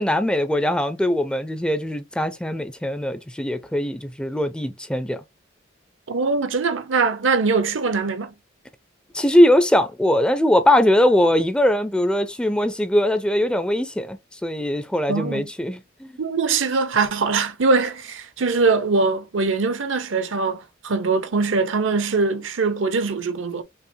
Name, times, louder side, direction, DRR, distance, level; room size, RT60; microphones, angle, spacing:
voice 1, 0.0-5.2 9.1-16.1, left 1 dB, 5° left, 0.4 m, -21 dB
voice 2, 6.1-8.3 15.1-15.5 16.2-23.6, right 4 dB, 75° right, 0.7 m, -22 dB
5.5 x 2.0 x 2.6 m
head